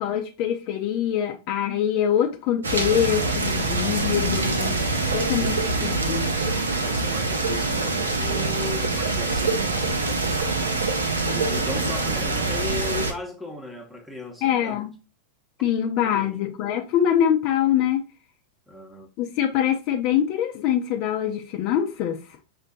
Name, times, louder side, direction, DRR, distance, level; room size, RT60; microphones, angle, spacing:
voice 1, 0.0-6.5 14.4-14.9 15.6-18.0 19.2-22.2, left 10 dB, 45° left, 0.5 m, -24 dB
sound 1, 2.6-13.1, right 3 dB, 75° right, 0.6 m, -25 dB
voice 2, 6.8-9.8 11.2-14.8 16.0-16.5 18.7-19.1, left 2 dB, 5° right, 0.9 m, -37 dB
6.1 x 2.1 x 2.6 m
figure-of-eight pair, 90°, 0 cm